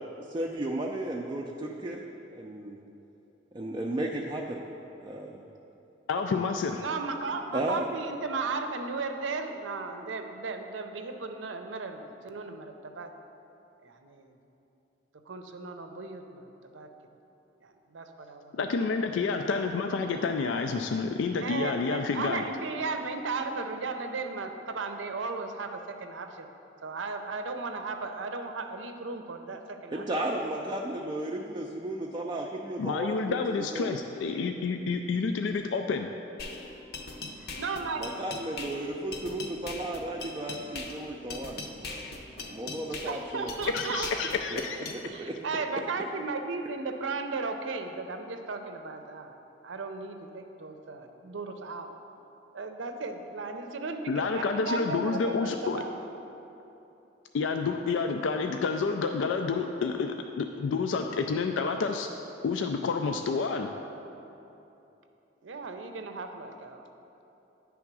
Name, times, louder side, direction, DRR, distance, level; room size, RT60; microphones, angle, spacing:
voice 1, 0.2-2.0 2.3-2.8 3.5-4.6 5.0-5.4 7.5-7.9 29.9-33.1 33.7-34.0 38.0-42.1 42.5-43.5 44.5-44.6 45.2-45.4, right 1 dB, 25° right, -1 dB, 0.4 m, -34 dB
voice 2, 6.1-6.8 18.5-22.4 32.8-36.1 43.6-44.8 54.1-55.8 57.3-62.1 62.4-63.7, left 4 dB, 80° left, 5 dB, 0.3 m, -29 dB
voice 3, 6.8-13.1 13.8-14.4 15.3-16.5 16.7-16.9 17.6-18.6 19.2-19.3 21.4-26.5 26.8-30.0 37.4-38.1 43.0-44.1 45.1-49.3 49.6-52.0 52.5-55.9 65.4-66.8, right 4 dB, 80° right, 6 dB, 0.6 m, -35 dB
sound 1, 36.4-45.0, left 3 dB, 55° left, 0.7 m, -40 dB
9.7 x 3.6 x 6.0 m, 2.9 s
head